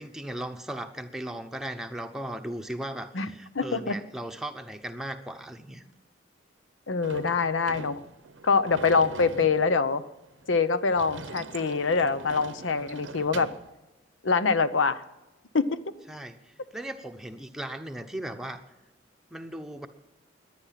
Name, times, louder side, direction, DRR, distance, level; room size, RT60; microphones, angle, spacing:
voice 1, 0.0-5.8 16.1-18.6 19.3-19.9, right 1 dB, ahead, 5 dB, 0.9 m, -37 dB
voice 2, 3.5-4.0 6.9-8.0 8.4-10.0 10.5-13.5 14.2-15.0 15.5-15.8, left 4 dB, 90° left, 13 dB, 0.8 m, -24 dB
Sliding door / Slam, 7.0-13.7, right 4 dB, 90° right, 0.8 m, -43 dB
22.0 x 9.6 x 5.8 m, 1.0 s
head